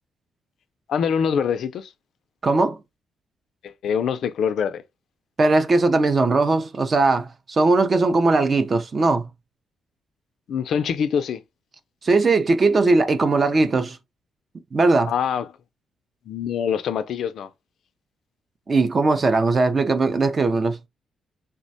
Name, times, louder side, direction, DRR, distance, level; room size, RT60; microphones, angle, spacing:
voice 1, 0.9-1.9 3.6-4.8 10.5-11.4 15.1-15.5 16.3-17.5, left 7 dB, 70° left, 0.3 m, -24 dB
voice 2, 2.4-2.8 5.4-9.3 12.0-14.0 14.7-15.1 18.7-20.8, right 3 dB, 35° right, 0.4 m, -19 dB
3.3 x 2.1 x 2.6 m
cardioid pair, 125°, 0 cm